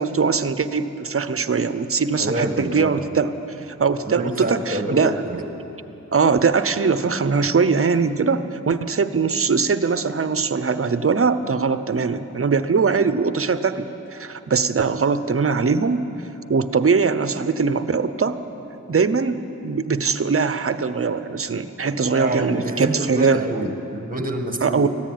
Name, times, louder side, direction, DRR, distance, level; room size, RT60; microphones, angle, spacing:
voice 1, 0.0-3.3 3.8-5.2 6.1-13.9 14.1-16.0 16.5-18.4 18.9-23.4 24.6-24.9, right 5 dB, 45° right, 12 dB, 0.8 m, -21 dB
voice 2, 2.2-3.0 4.1-5.4 22.2-24.9, right 1 dB, 30° right, 5 dB, 1.7 m, -27 dB
19.0 x 14.5 x 9.3 m, 3.0 s
wide cardioid pair, 105°, 30 cm